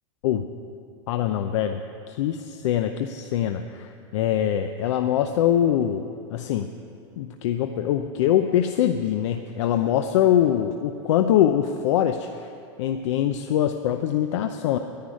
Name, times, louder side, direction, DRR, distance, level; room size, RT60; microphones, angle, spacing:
voice 1, 1.1-1.8 2.1-6.7 7.2-12.5 12.8-14.8, left 10 dB, 65° left, 7 dB, 0.7 m, -23 dB
10.5 x 10.5 x 9.6 m, 2.8 s
supercardioid pair, 175°, 16 cm